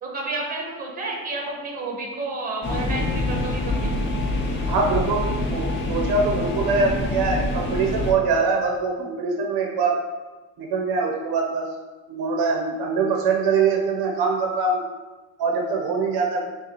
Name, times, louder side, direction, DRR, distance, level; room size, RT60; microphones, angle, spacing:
voice 1, 0.0-3.9, right 2 dB, 20° right, -1 dB, 1.1 m, -31 dB
sound 1, 2.6-8.1, left 2 dB, 30° left, 0.8 m, -26 dB
voice 2, 4.7-10.0 10.6-11.6 12.1-14.8 15.4-16.5, right 4 dB, 60° right, 0 dB, 0.8 m, -23 dB
6.6 x 2.3 x 2.9 m, 1.2 s
supercardioid pair, 110°, 41 cm